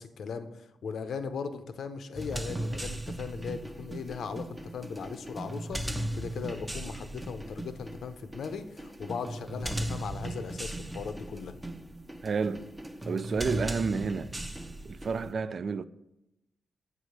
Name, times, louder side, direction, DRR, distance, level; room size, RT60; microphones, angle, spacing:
voice 1, 0.0-11.6, left 5 dB, 75° left, 0.7 m, -38 dB
sound 1, 2.2-15.3, right 1 dB, 10° right, 0.6 m, -37 dB
voice 2, 12.2-12.7 13.1-14.3 14.8-15.8, right 5 dB, 55° right, 0.3 m, -30 dB
8.0 x 4.8 x 5.2 m
cardioid pair, 85°, 0 cm